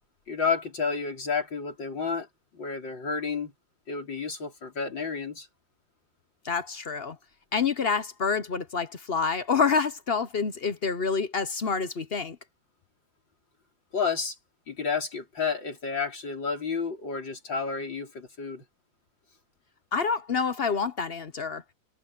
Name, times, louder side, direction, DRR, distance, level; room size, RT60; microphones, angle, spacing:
voice 1, 0.3-2.3 2.5-3.5 3.9-5.5 13.9-14.4 14.7-18.6, left 5 dB, 85° left, 5.1 m, -30 dB
voice 2, 6.4-7.2 7.5-12.4 19.9-21.6, left 5 dB, 45° left, 0.8 m, -27 dB
omnidirectional pair, 2.0 m